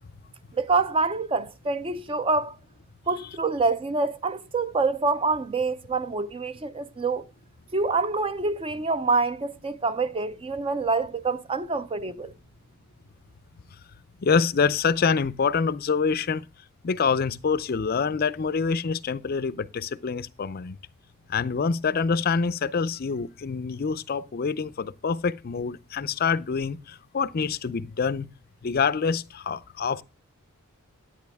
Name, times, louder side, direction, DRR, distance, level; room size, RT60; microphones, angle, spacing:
voice 1, 0.5-2.6 3.1-7.2 7.7-12.3, right 3 dB, 25° right, 0.4 m, -26 dB
voice 2, 14.2-16.4 16.8-20.8 21.3-28.3 28.6-30.0, left 5 dB, 45° left, 0.4 m, -26 dB
10.5 x 9.0 x 3.5 m
head